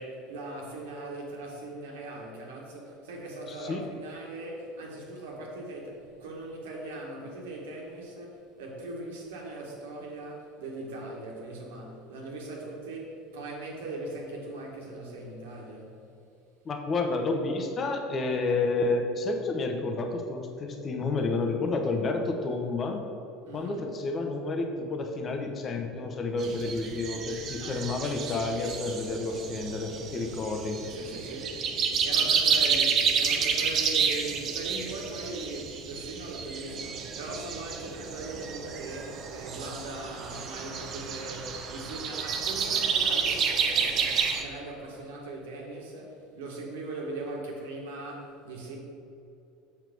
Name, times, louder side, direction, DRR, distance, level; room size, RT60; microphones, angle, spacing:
voice 1, 0.0-15.9 23.4-23.9 27.6-28.0 30.9-31.6 32.0-48.8, right 2 dB, 70° right, -1 dB, 1.7 m, -40 dB
voice 2, 3.5-3.8 16.6-23.0 23.5-30.8, left 3 dB, 35° left, 3 dB, 1.1 m, -30 dB
sound 1, 26.4-44.4, right 6 dB, 45° right, 0.8 m, -30 dB
7.2 x 4.5 x 6.2 m, 2.7 s
hypercardioid pair, 70°, 0 cm